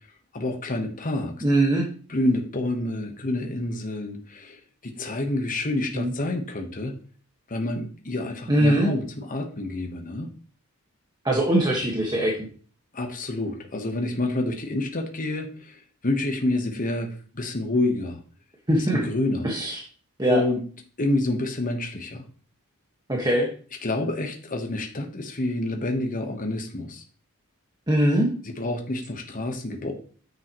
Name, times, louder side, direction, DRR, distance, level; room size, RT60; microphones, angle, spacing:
voice 1, 0.3-1.4 2.1-6.9 7.5-10.3 12.9-18.2 18.9-19.5 20.3-20.6 21.0-22.2 23.8-27.0 28.6-29.9, left 2 dB, 40° left, 4 dB, 1.2 m, -28 dB
voice 2, 1.4-1.8 5.9-6.1 8.5-8.9 11.2-12.4 18.7-19.0 19.4-19.8 20.2-20.4 23.1-23.5 27.9-28.3, right 1 dB, 20° right, -2 dB, 1.5 m, -21 dB
9.5 x 7.6 x 3.1 m, 0.42 s
head